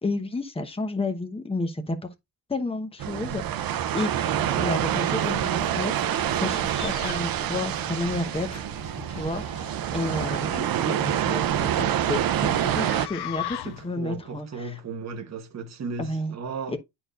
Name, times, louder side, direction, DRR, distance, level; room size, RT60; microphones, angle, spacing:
voice 1, 0.0-2.1 2.5-5.9 6.4-8.6 9.1-14.8 16.0-16.3 16.7-16.8, left 2 dB, 10° left, 0.9 m, -31 dB
sound 1, 3.0-13.1, right 10 dB, 50° right, 0.5 m, -26 dB
sound 2, 4.2-14.0, left 12 dB, 60° left, 0.6 m, -41 dB
Scratching (performance technique), 5.2-6.0 6.3-7.1 7.4-7.5 7.7-9.6 9.9-10.5, right 2 dB, 15° right, 2.0 m, -49 dB
voice 2, 13.6-16.8, right 4 dB, 35° right, 1.1 m, -35 dB
9.8 x 4.5 x 2.4 m
wide cardioid pair, 175°, 46 cm